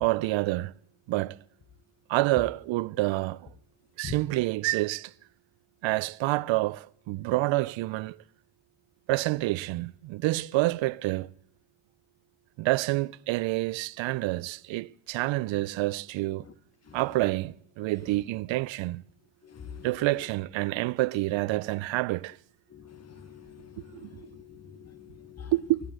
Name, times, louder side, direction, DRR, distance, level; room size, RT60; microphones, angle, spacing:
voice 1, 0.0-0.7 1.1-1.4 2.1-3.5 4.0-5.1 5.8-8.2 9.1-11.3 12.6-16.5 16.9-19.0 19.8-22.4 23.9-24.1 25.5-25.8, right 19 dB, 70° right, 0.5 m, -28 dB
voice 2, 19.4-19.9 22.7-25.5, left 7 dB, 35° left, 1.3 m, -45 dB
16.5 x 8.3 x 8.9 m
cardioid pair, 80°, 47 cm